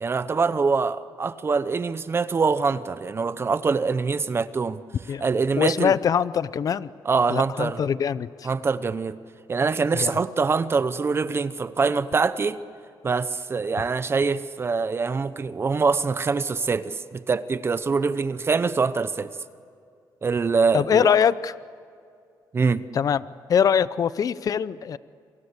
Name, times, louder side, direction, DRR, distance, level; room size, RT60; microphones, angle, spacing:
voice 1, 0.0-4.8 5.2-5.9 7.0-7.8 8.4-9.2 9.5-12.6 13.0-19.3 20.2-21.1 22.5-22.8, right 4 dB, 30° right, 14 dB, 0.8 m, -24 dB
voice 2, 5.6-6.9 7.3-8.5 9.9-10.1 20.7-21.5 22.9-23.2 23.5-25.0, left 8 dB, 50° left, 17 dB, 0.7 m, -22 dB
27.5 x 24.5 x 8.2 m, 2.3 s
cardioid pair, 120°, 8 cm